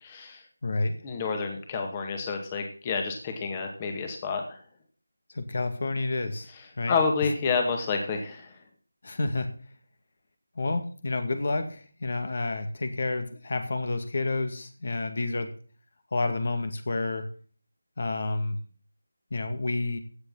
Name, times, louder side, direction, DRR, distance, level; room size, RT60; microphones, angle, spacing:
voice 1, 0.0-0.4 1.0-4.6 6.9-8.6, left 5 dB, 20° left, 4 dB, 2.0 m, -29 dB
voice 2, 0.6-1.0 5.3-6.5 6.8-7.0 9.0-9.5 10.6-15.5 16.1-17.3 18.0-18.6 19.3-20.0, left 2 dB, 50° left, 8 dB, 2.1 m, -29 dB
16.0 x 8.0 x 4.0 m, 0.43 s
figure-of-eight pair, 165°, 0 cm